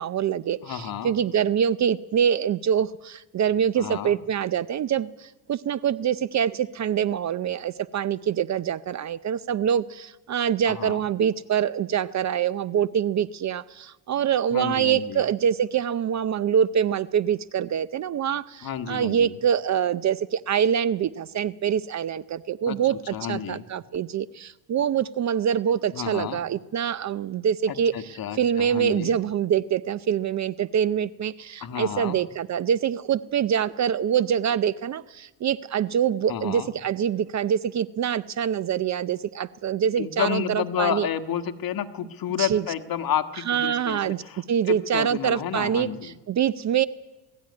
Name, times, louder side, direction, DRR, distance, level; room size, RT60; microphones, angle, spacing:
voice 1, 0.0-41.1 42.4-42.6 43.5-46.9, right 8 dB, 35° right, 17 dB, 0.6 m, -25 dB
voice 2, 0.6-1.2 3.8-4.2 10.7-11.0 14.5-15.2 18.6-19.4 22.7-23.7 25.9-26.4 27.7-29.2 31.6-32.2 36.3-36.7 40.0-46.1, left 9 dB, 45° left, 8 dB, 1.5 m, -31 dB
21.0 x 14.0 x 9.6 m, 1.1 s
cardioid pair, 110°, 46 cm